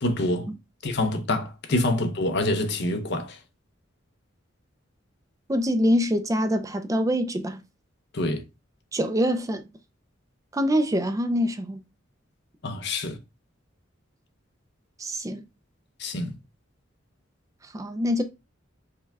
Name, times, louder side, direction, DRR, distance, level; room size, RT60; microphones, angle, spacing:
voice 1, 0.0-0.5 0.8-3.4 8.1-8.4 12.6-13.2 16.0-16.4, left 1 dB, 60° left, 0.7 m, -26 dB
voice 2, 5.5-7.6 8.9-9.6 10.5-11.8 15.0-15.4 17.7-18.2, equal, 15° right, 0.4 m, -24 dB
5.3 x 2.2 x 3.4 m
head